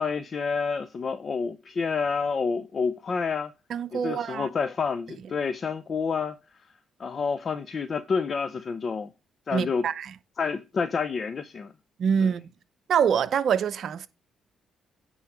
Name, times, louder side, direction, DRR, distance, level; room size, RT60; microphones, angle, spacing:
voice 1, 0.0-3.5 3.9-6.4 7.0-9.1 9.5-9.9 10.4-11.7 12.2-12.3, left 5 dB, 45° left, 0.6 m, -29 dB
voice 2, 3.7-4.5 9.5-10.1 12.0-12.4 12.9-14.1, right 7 dB, 60° right, 0.6 m, -25 dB
9.3 x 3.8 x 6.2 m
cardioid pair, 90°, 0 cm